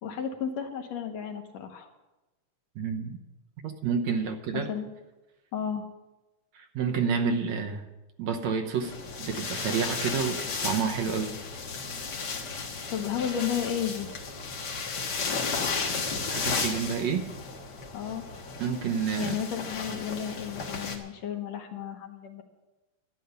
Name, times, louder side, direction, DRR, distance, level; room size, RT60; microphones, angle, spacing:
voice 1, 0.0-1.9 4.5-4.9 5.5-5.9 12.5-14.1 17.9-18.3 19.2-22.4, left 8 dB, 65° left, 4 dB, 2.3 m, -33 dB
voice 2, 2.8-3.2 3.6-4.7 6.5-7.9 8.2-11.3 16.3-17.3 18.6-19.4, right 6 dB, 70° right, 4 dB, 2.1 m, -29 dB
sound 1, 8.8-21.0, left 4 dB, 45° left, 1.5 m, -34 dB
12.5 x 10.0 x 6.8 m, 1.1 s
omnidirectional pair, 3.4 m